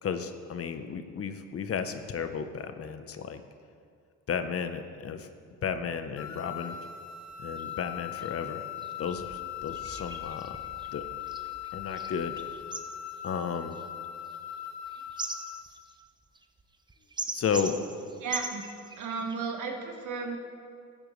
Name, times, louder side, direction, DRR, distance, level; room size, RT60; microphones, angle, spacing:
voice 1, 0.0-3.4 4.3-5.3 5.6-6.8 7.4-8.6 9.0-10.6 10.9-11.0 11.7-12.4 13.2-13.8 17.3-17.8, left 6 dB, 50° left, 9 dB, 0.8 m, -33 dB
sound 1, 6.2-15.7, left 11 dB, 65° left, 1.4 m, -40 dB
sound 2, 7.3-7.4 7.6-7.7 8.2-8.3 8.8-19.4, right 3 dB, 15° right, 0.6 m, -42 dB
voice 2, 18.2-18.6 19.0-20.4, right 4 dB, 80° right, 3 dB, 1.4 m, -34 dB
14.5 x 8.9 x 3.2 m, 2.3 s
cardioid pair, 90°, 30 cm